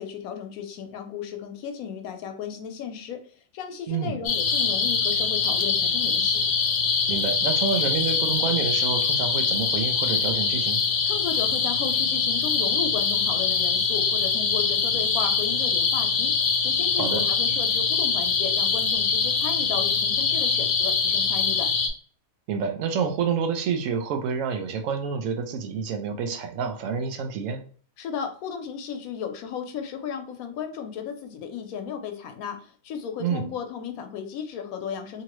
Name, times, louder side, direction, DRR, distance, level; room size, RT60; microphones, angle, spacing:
voice 1, 0.0-6.4 11.1-21.7 28.0-35.2, left 7 dB, 80° left, 6 dB, 1.0 m, -35 dB
voice 2, 3.9-4.2 7.1-10.8 17.0-17.2 22.5-27.6 33.2-33.5, right 6 dB, 70° right, 6 dB, 0.9 m, -28 dB
sound 1, 4.2-21.9, left 5 dB, 65° left, 0.7 m, -23 dB
2.9 x 2.7 x 3.0 m, 0.43 s
omnidirectional pair, 1.5 m